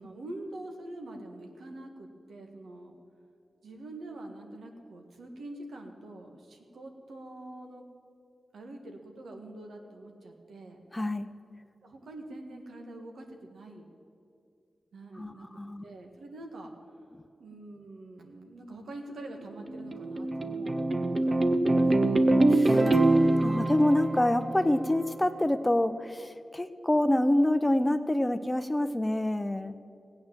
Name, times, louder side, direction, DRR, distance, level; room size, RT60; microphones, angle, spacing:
voice 1, 0.0-3.0 3.6-7.8 8.5-10.8 11.8-13.9 14.9-15.5 15.8-16.7 17.4-22.5, right 1 dB, 85° right, 3 dB, 1.6 m, -45 dB
voice 2, 10.9-11.3 15.1-15.8 22.5-22.9 23.4-29.7, left 1 dB, 15° left, 11 dB, 0.7 m, -27 dB
sound 1, 19.4-25.1, right 2 dB, 45° right, 0.8 m, -24 dB
15.5 x 8.8 x 7.4 m, 2.6 s
cardioid pair, 55°, 0 cm